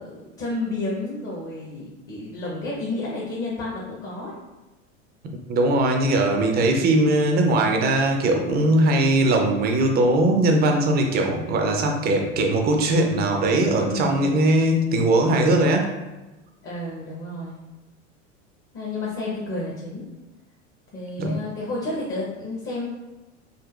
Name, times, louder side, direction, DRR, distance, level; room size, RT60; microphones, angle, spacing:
voice 1, 0.0-4.3 13.9-14.3 16.6-17.6 18.7-20.1 20.9-22.9, left 2 dB, 35° left, -4 dB, 0.9 m, -31 dB
voice 2, 5.5-15.9 21.2-21.4, right 1 dB, 25° right, 3 dB, 0.5 m, -20 dB
3.8 x 2.6 x 2.3 m, 1.1 s
hypercardioid pair, 85°, 38 cm